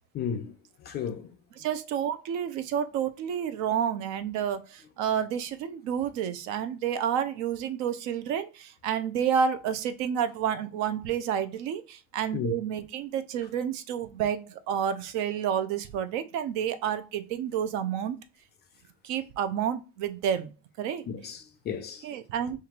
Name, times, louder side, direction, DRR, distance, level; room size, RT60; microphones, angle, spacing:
voice 1, 0.1-0.5 0.8-1.3 12.3-12.5 21.1-22.1, left 7 dB, 30° left, 0.5 m, -33 dB
voice 2, 1.6-18.2 19.0-20.5 20.8-21.1 22.0-22.6, right 8 dB, 50° right, 0.7 m, -30 dB
5.8 x 2.5 x 2.9 m
supercardioid pair, 105°, 36 cm